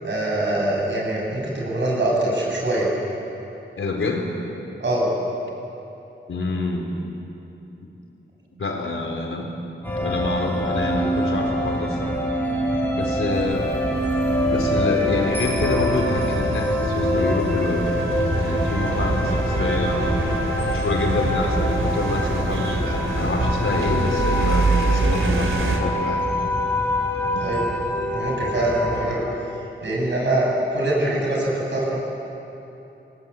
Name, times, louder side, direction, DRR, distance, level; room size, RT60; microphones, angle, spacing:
voice 1, 0.0-2.9 4.8-5.1 8.6-8.7 27.4-27.6 28.1-29.5 29.8-32.0, right 1 dB, 65° right, -3 dB, 7.9 m, -23 dB
voice 2, 3.8-4.3 6.3-6.9 8.6-9.5 10.0-12.2 13.0-13.7 14.5-18.0 18.4-20.2 20.7-26.2, left 2 dB, 90° left, 1 dB, 4.1 m, -26 dB
sound 1, 9.8-29.1, left 1 dB, 10° left, 6.4 m, -25 dB
sound 2, 13.3-25.8, right 3 dB, 80° right, 3.4 m, -26 dB
29.0 x 19.0 x 8.6 m, 3.0 s
wide cardioid pair, 135°, 20 cm